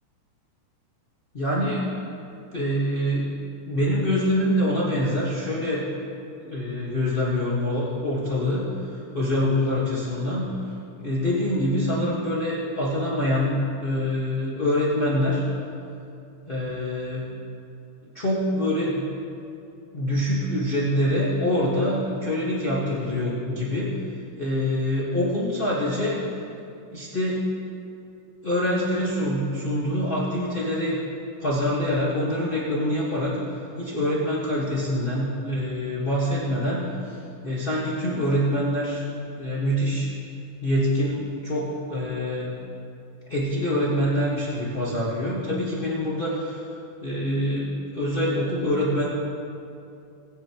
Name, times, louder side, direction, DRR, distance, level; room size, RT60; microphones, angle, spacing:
voice 1, 1.3-1.9 2.5-3.3 3.6-5.9 6.4-10.6 11.0-15.4 16.5-17.3 18.1-19.0 19.9-23.9 24.4-26.2 26.9-27.5 28.4-31.0 31.4-37.2 37.4-39.0 39.4-40.1 40.6-42.5 43.3-46.6 47.0-49.1, left 1 dB, 60° left, -7 dB, 0.5 m, -25 dB
20.0 x 9.5 x 3.0 m, 2.6 s
omnidirectional pair, 3.6 m